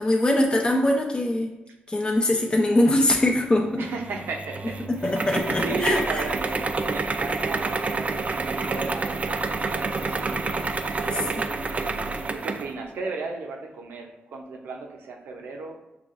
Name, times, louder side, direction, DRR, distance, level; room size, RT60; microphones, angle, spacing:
voice 1, 0.0-1.5 1.9-3.9 5.0-6.2 11.1-11.2, left 1 dB, 25° left, 0 dB, 0.6 m, -22 dB
voice 2, 3.8-5.2 5.6-10.4 11.0-11.6 12.3-15.8, right 4 dB, 85° right, 2 dB, 0.7 m, -36 dB
sound 1, 3.9-12.7, right 3 dB, 40° right, 0.4 m, -28 dB
5.8 x 3.0 x 2.5 m, 1.0 s
cardioid pair, 65°, 4 cm